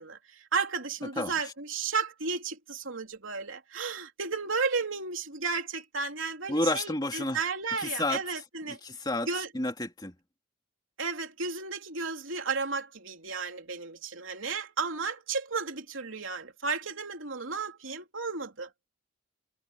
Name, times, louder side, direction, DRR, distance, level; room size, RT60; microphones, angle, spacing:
voice 1, 0.0-8.8 9.2-9.5 11.0-18.7, right 4 dB, 75° right, 3.2 m, -33 dB
voice 2, 1.2-1.5 6.5-7.4 7.8-8.2 8.7-9.3 9.5-10.1, left 2 dB, 20° left, 2.9 m, -30 dB
head